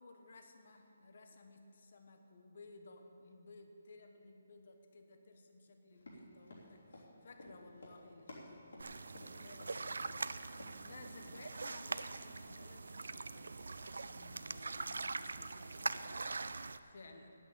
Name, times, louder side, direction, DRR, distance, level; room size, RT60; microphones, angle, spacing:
voice 1, 0.0-8.9 9.2-10.1 10.8-17.3, left 3 dB, 45° left, 5 dB, 1.1 m, -58 dB
Run, 6.0-9.7 10.1-10.2 10.5-10.9 11.2-11.4, left 1 dB, 70° left, 3.2 m, -54 dB
sound 1, 8.8-16.8, right 3 dB, 85° right, 0.4 m, -43 dB
9.2 x 8.3 x 8.4 m, 2.7 s
hypercardioid pair, 175°, 0 cm